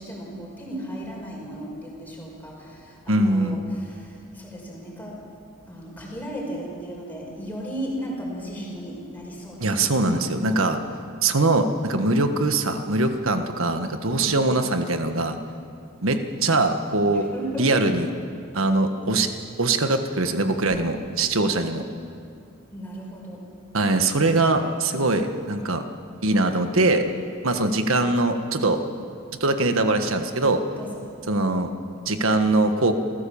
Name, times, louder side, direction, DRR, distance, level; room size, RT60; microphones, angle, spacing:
voice 1, 0.0-5.2 5.7-10.5 14.1-14.6 17.1-18.0 22.7-23.4 30.8-30.9, equal, 10° left, -3 dB, 5.1 m, -35 dB
voice 2, 3.1-3.6 9.6-10.8 11.2-15.4 16.0-17.3 17.6-18.1 18.5-19.3 19.6-21.8 23.7-25.8 26.2-27.0 27.4-28.8 29.4-30.6 31.3-31.7 32.0-32.9, right 2 dB, 70° right, 7 dB, 1.5 m, -22 dB
27.0 x 15.5 x 7.1 m, 2.4 s
head